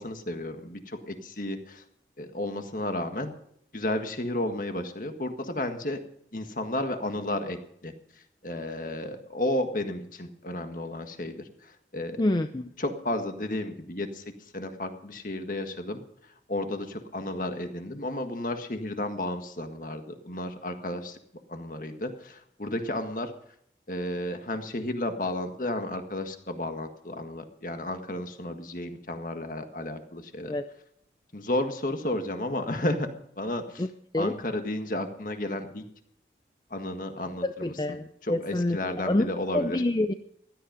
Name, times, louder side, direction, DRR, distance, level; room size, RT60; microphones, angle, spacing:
voice 1, 0.0-1.8 2.2-3.3 3.7-6.0 6.3-7.9 8.4-12.2 12.8-14.2 14.5-16.0 16.5-21.2 21.5-23.3 23.9-30.5 31.3-33.1 33.4-33.9 34.1-35.8 36.7-39.8, left 1 dB, 50° left, 6 dB, 1.7 m, -32 dB
voice 2, 12.2-12.7 30.5-30.7 33.8-33.9 34.1-34.3 37.4-39.3 39.5-40.1, left 1 dB, 25° left, 9 dB, 0.5 m, -27 dB
16.0 x 12.0 x 5.2 m, 0.70 s
head